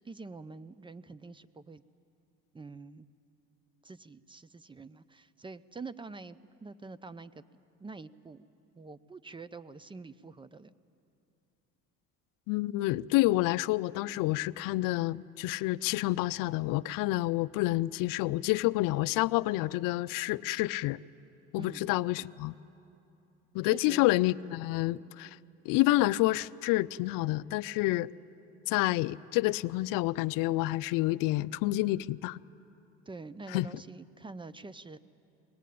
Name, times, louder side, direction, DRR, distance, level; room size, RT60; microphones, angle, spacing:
voice 1, 0.0-1.8 2.5-3.1 3.8-8.5 8.8-10.7 21.6-21.9 23.6-24.1 33.1-35.0, right 3 dB, 15° right, 15 dB, 0.5 m, -46 dB
voice 2, 12.5-21.0 21.5-22.5 23.5-25.4 25.7-28.1 28.7-32.4 33.5-33.7, left 18 dB, 70° left, 17 dB, 0.5 m, -28 dB
22.0 x 19.5 x 8.5 m, 2.8 s
supercardioid pair, 100°, 34 cm